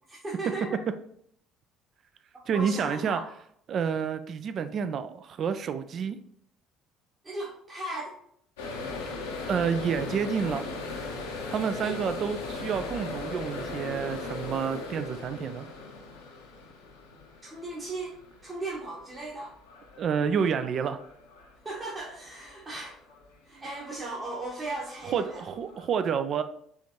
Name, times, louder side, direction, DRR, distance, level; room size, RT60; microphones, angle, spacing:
voice 1, 0.1-0.8 2.5-3.2 7.2-8.1 11.8-11.9 17.5-18.1 18.4-19.5 21.6-22.9 23.4-25.4, right 2 dB, 30° right, -5 dB, 1.1 m, -36 dB
voice 2, 2.5-3.2 3.7-6.2 9.5-10.7 11.5-15.7 20.0-21.0 25.0-26.4, right 7 dB, 45° right, 10 dB, 0.3 m, -29 dB
sound 1, 8.6-23.4 23.7-24.1 24.5-25.8, left 3 dB, 75° left, 0.7 m, -39 dB
4.4 x 3.3 x 2.9 m, 0.66 s
figure-of-eight pair, 55°, 0 cm